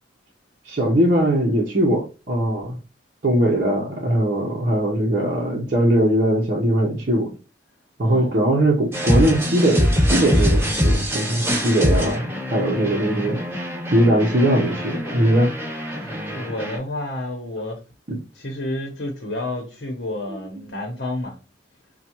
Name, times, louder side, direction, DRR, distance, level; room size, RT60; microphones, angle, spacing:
voice 1, 0.7-2.8 3.2-7.3 8.0-13.4 13.9-15.5 16.1-16.2 18.1-18.2, right 1 dB, 50° right, 0.8 m, -20 dB
voice 2, 8.0-8.3 16.3-17.8 18.3-21.4, left 1 dB, 65° left, 0.9 m, -30 dB
sound 1, 8.9-16.8, equal, 15° right, 2.3 m, -23 dB
5.6 x 2.3 x 2.9 m
head